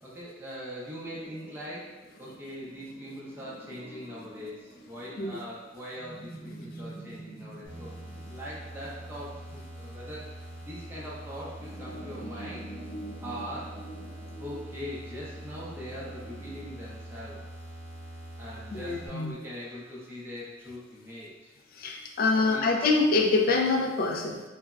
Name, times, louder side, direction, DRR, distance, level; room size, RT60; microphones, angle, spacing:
voice 1, 0.0-1.9 2.2-8.0 8.3-9.4 9.8-10.2 10.6-12.7 13.2-13.8 14.4-17.4 18.4-21.5 22.3-22.7, equal, 10° right, -7 dB, 0.6 m, -41 dB
sound 1, 1.0-16.7, right 1 dB, 15° left, 0.9 m, -47 dB
sound 2, 7.6-19.1, right 1 dB, 70° left, 0.7 m, -44 dB
voice 2, 18.7-19.3 21.7-24.4, left 3 dB, 50° left, 2 dB, 0.3 m, -25 dB
3.3 x 2.0 x 2.3 m, 1.1 s
head